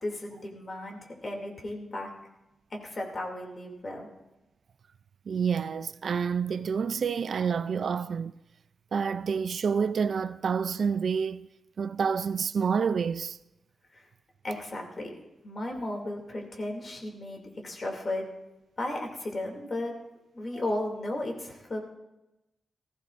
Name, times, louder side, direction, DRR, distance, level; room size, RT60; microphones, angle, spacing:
voice 1, 0.0-2.1 2.7-4.1 13.9-14.1 14.4-15.1 15.4-18.3 18.8-20.0 20.3-21.8, left 1 dB, 35° left, 2.5 m, -35 dB
voice 2, 5.3-8.3 8.9-11.5 11.8-13.4 20.5-20.6, right 6 dB, 60° right, 0.3 m, -28 dB
19.0 x 15.0 x 2.5 m
wide cardioid pair, 125°, 0 cm